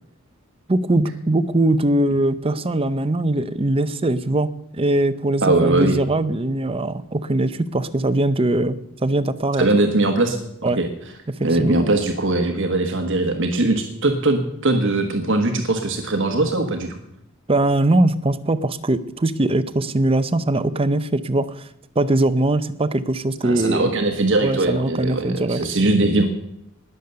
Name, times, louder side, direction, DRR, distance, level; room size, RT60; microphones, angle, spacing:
voice 1, 0.7-9.7 10.6-10.8 11.3-11.8 17.5-21.7 22.0-23.9 24.4-25.6, right 2 dB, 25° right, 13 dB, 0.6 m, -21 dB
voice 2, 5.4-6.0 9.6-10.9 11.4-17.0 23.4-26.2, right 2 dB, 60° right, 5 dB, 1.3 m, -20 dB
20.0 x 6.7 x 6.9 m, 0.81 s
head